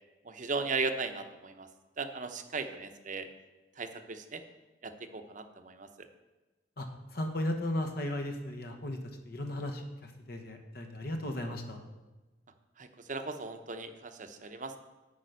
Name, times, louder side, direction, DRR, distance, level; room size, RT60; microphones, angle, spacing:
voice 1, 0.2-1.7 2.0-3.3 3.8-4.4 4.8-6.1 12.8-14.8, right 4 dB, 45° right, 7 dB, 0.8 m, -37 dB
voice 2, 6.8-11.9, left 1 dB, 60° left, 5 dB, 1.2 m, -36 dB
8.5 x 5.7 x 8.0 m, 1.1 s
head